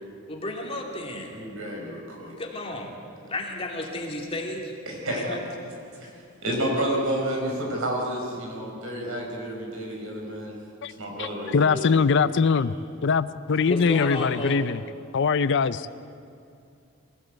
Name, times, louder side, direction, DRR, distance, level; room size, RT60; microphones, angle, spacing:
voice 1, 0.3-1.3 2.4-2.9 3.3-4.7 5.1-5.4 13.7-14.8, left 1 dB, 25° left, 0 dB, 2.7 m, -32 dB
voice 2, 1.3-2.3 4.9-5.4 6.0-6.1 6.4-10.5 11.0-11.8, right 1 dB, 70° right, 0 dB, 5.4 m, -30 dB
voice 3, 11.2-12.7 13.0-14.8 15.1-15.9, left 5 dB, 55° left, 15 dB, 0.5 m, -22 dB
23.0 x 16.0 x 8.1 m, 2.6 s
head